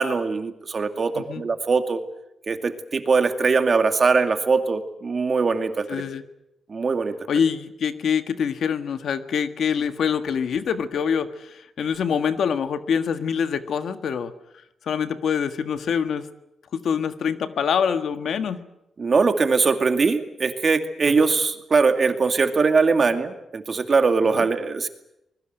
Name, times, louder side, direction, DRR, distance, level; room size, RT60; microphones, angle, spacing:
voice 1, 0.0-2.0 2.5-6.0 6.7-7.1 19.0-24.9, right 4 dB, 45° right, 7 dB, 2.4 m, -21 dB
voice 2, 5.9-6.2 7.3-14.3 14.8-16.3 16.7-18.6 21.1-21.3 24.2-24.5, left 7 dB, 80° left, 9 dB, 1.6 m, -25 dB
25.0 x 21.0 x 8.0 m, 0.85 s
wide cardioid pair, 110°, 0 cm